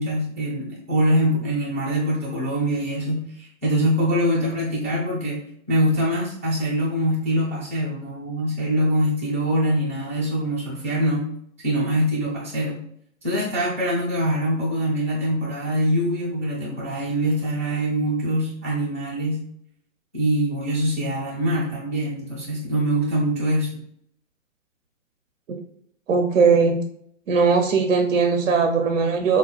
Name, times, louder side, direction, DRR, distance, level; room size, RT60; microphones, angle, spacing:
voice 1, 0.0-11.3 11.6-12.8 13.2-19.4 20.1-23.8, equal, 10° right, -7 dB, 0.4 m, -24 dB
voice 2, 26.1-26.8 27.3-29.4, right 5 dB, 65° right, 4 dB, 0.5 m, -19 dB
3.8 x 2.2 x 2.3 m, 0.67 s
figure-of-eight pair, 130°, 40 cm